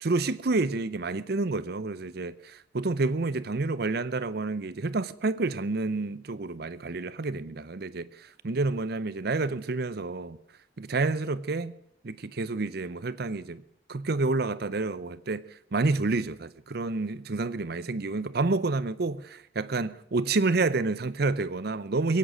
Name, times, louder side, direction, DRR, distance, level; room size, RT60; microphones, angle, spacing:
voice 1, 0.0-10.4 10.8-11.7 12.0-13.6 13.9-15.4 15.7-19.2 19.6-22.2, right 3 dB, 60° right, 0.7 m, -29 dB
21.5 x 8.9 x 6.2 m
head